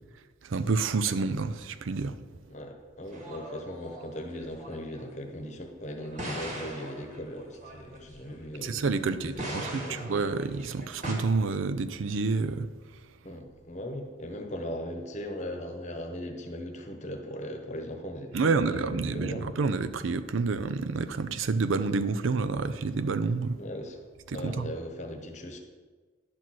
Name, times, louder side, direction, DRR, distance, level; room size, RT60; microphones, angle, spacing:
voice 1, 0.4-2.2 8.6-12.7 18.3-23.6 24.3-24.7, right 4 dB, 90° right, 0.5 m, -28 dB
voice 2, 2.5-10.1 13.2-19.5 23.5-24.0 24.3-25.6, equal, 35° left, 1.0 m, -39 dB
sound 1, 3.1-5.0 6.0-9.0 9.3-11.1, right 1 dB, 40° right, 1.6 m, -40 dB
10.5 x 4.2 x 6.2 m
head